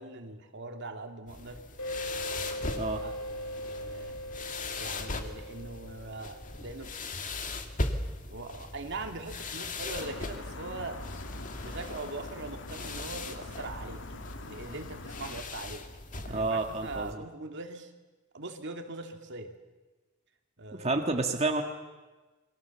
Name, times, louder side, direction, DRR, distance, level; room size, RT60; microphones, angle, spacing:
voice 1, 0.0-1.6 3.0-4.2 4.7-6.9 8.3-11.0 11.6-15.9 16.2-17.9 18.3-19.6 20.6-21.0, right 2 dB, 60° right, 5 dB, 2.4 m, -41 dB
sound 1, 1.3-17.1, left 2 dB, 40° left, 2.1 m, -39 dB
sound 2, 1.8-7.1, equal, 85° left, 3.6 m, -40 dB
sound 3, 10.0-15.4, left 3 dB, 65° left, 1.5 m, -44 dB
voice 2, 16.3-17.2 20.8-21.6, right 3 dB, 30° right, 3 dB, 1.8 m, -29 dB
29.0 x 23.5 x 7.1 m, 1.2 s
head